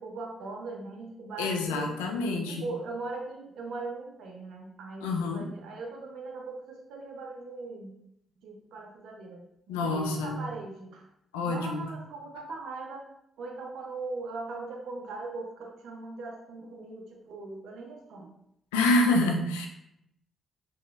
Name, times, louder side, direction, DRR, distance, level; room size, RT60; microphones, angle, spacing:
voice 1, 0.0-1.9 2.5-7.9 8.4-11.1 11.4-13.1 13.4-18.3, right 3 dB, 70° right, 2 dB, 0.4 m, -40 dB
voice 2, 1.4-2.6 5.0-5.5 9.7-10.4 11.3-11.9 18.7-19.7, left 2 dB, 85° left, 2 dB, 0.4 m, -27 dB
3.0 x 2.9 x 2.3 m, 0.78 s
hypercardioid pair, 40°, 0 cm